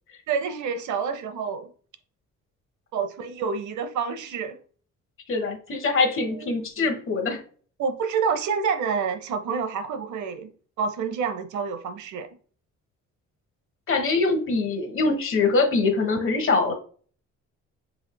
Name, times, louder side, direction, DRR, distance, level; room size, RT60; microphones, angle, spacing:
voice 1, 0.3-1.7 2.9-4.6 6.4-6.5 7.8-10.5 10.8-12.3, right 6 dB, 75° right, 0.8 m, -28 dB
voice 2, 5.3-7.4 13.9-16.7, left 3 dB, 45° left, 1.2 m, -23 dB
5.3 x 3.4 x 2.2 m
cardioid pair, 90°, 30 cm